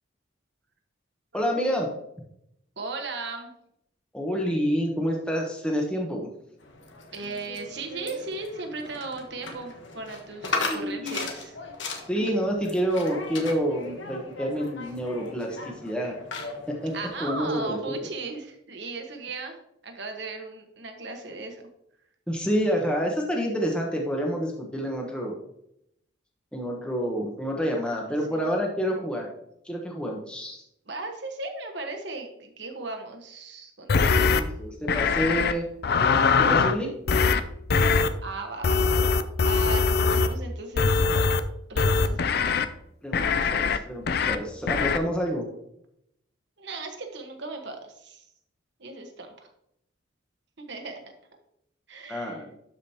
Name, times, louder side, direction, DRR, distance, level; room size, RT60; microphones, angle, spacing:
voice 1, 1.3-1.9 4.1-6.3 10.6-11.3 12.1-16.2 16.7-16.9 17.2-17.9 22.3-25.3 26.5-29.3 29.6-30.6 34.0-35.6 36.4-36.9 43.0-45.4 52.1-52.5, equal, 5° left, 0 dB, 1.1 m, -28 dB
voice 2, 2.8-3.5 7.1-11.6 16.9-19.6 19.8-21.6 27.6-28.0 28.3-28.4 30.9-34.3 38.2-41.0 41.7-42.2 46.6-48.2 48.8-49.3 50.6-50.9 51.9-52.4, right 3 dB, 60° right, 4 dB, 1.3 m, -37 dB
sound 1, 6.6-17.5, left 3 dB, 70° left, 1.3 m, -37 dB
sound 2, 33.9-34.4 34.9-35.5 35.8-36.8 37.1-37.4 37.7-38.1 38.6-40.3 40.8-41.4 41.8-42.7 43.1-43.8 44.1-44.4 44.7-45.0, left 5 dB, 50° left, 0.4 m, -22 dB
12.0 x 5.1 x 2.9 m, 0.76 s
head